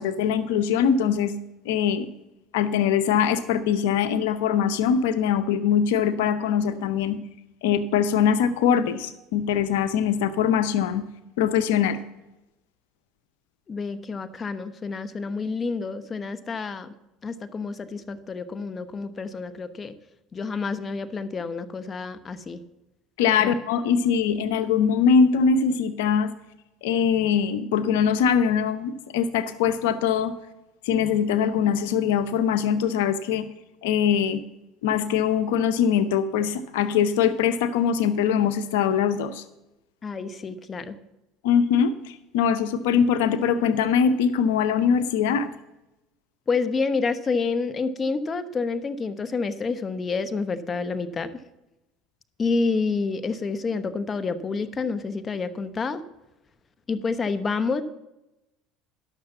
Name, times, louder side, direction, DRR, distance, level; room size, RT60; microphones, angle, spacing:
voice 1, 0.0-1.3 1.7-2.1 2.5-7.2 7.6-11.0 11.4-12.0 23.2-26.3 26.8-30.3 30.8-33.5 33.8-34.4 34.8-39.4 41.4-45.5, left 7 dB, 85° left, 11 dB, 0.7 m, -22 dB
voice 2, 13.7-16.9 17.2-19.9 20.3-22.6 23.4-23.5 40.0-41.0 46.5-51.4 52.4-56.0 56.9-57.8, left 4 dB, 30° left, 12 dB, 1.0 m, -28 dB
11.5 x 6.6 x 7.1 m, 0.93 s
supercardioid pair, 90°, 0 cm